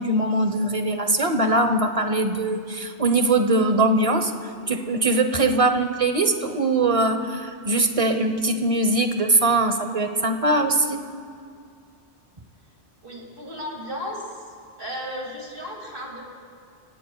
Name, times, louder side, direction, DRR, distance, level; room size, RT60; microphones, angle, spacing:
voice 1, 0.0-4.3 4.7-11.0, right 2 dB, 35° right, 7 dB, 0.9 m, -21 dB
voice 2, 13.0-14.4 14.8-16.3, equal, 50° right, -1 dB, 2.6 m, -34 dB
28.0 x 17.0 x 2.3 m, 2.4 s
omnidirectional pair, 1.2 m